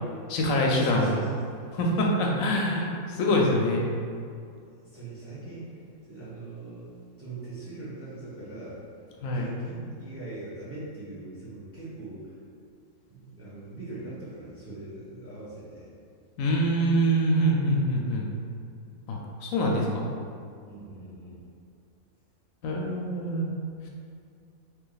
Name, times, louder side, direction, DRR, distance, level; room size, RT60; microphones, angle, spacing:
voice 1, 0.3-1.2 1.7-3.8 9.2-9.5 16.4-18.2 19.1-20.0 22.6-23.5, equal, 75° left, -1 dB, 1.0 m, -25 dB
voice 2, 0.8-1.3 4.8-5.8 6.1-6.9 7.2-8.8 9.2-12.2 13.1-15.9 20.7-21.4, right 3 dB, 15° right, -9 dB, 0.6 m, -40 dB
3.0 x 2.9 x 3.8 m, 2.3 s
omnidirectional pair, 1.5 m